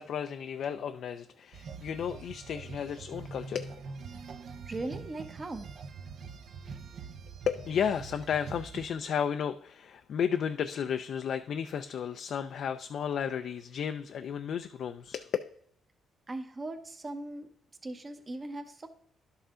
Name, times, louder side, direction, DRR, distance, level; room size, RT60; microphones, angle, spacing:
voice 1, 0.0-3.8 7.5-15.3, left 8 dB, 65° left, 8 dB, 0.4 m, -33 dB
sound 1, 1.5-8.9, right 5 dB, 60° right, 0.7 m, -44 dB
voice 2, 4.6-5.7 16.3-17.5 17.8-18.9, right 2 dB, 30° right, 7 dB, 0.9 m, -39 dB
11.5 x 5.6 x 3.7 m, 0.63 s
cardioid pair, 90°, 0 cm